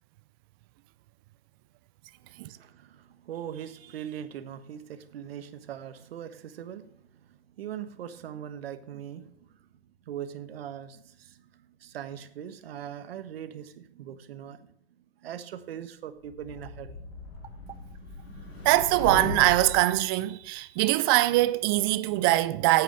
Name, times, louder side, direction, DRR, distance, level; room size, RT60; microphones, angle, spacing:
voice 1, 2.2-9.7 10.1-14.7 15.2-17.0, right 9 dB, 65° right, 1.3 m, -41 dB
sound 1, 16.2-19.9, left 3 dB, 70° left, 4.5 m, -38 dB
voice 2, 18.6-22.8, right 17 dB, 25° right, 0.3 m, -23 dB
9.3 x 8.5 x 6.6 m
hypercardioid pair, 125°, 33 cm